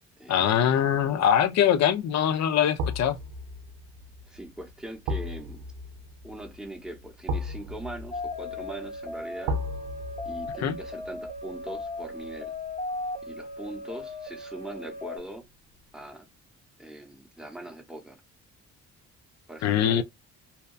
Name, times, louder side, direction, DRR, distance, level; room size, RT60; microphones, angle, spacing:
voice 1, 0.3-3.2 10.6-10.8 19.6-20.0, left 9 dB, 60° left, 0.4 m, -23 dB
sound 1, 2.8-13.8 14.1-14.3, equal, 85° right, 0.5 m, -37 dB
voice 2, 4.3-5.6 6.2-9.6 10.2-12.5 13.2-15.4 15.9-16.3 16.8-18.2 19.5-20.0, right 1 dB, ahead, 0.7 m, -41 dB
sound 2, 8.1-15.2, left 2 dB, 35° left, 0.8 m, -37 dB
2.8 x 2.2 x 2.3 m
cardioid pair, 90°, 30 cm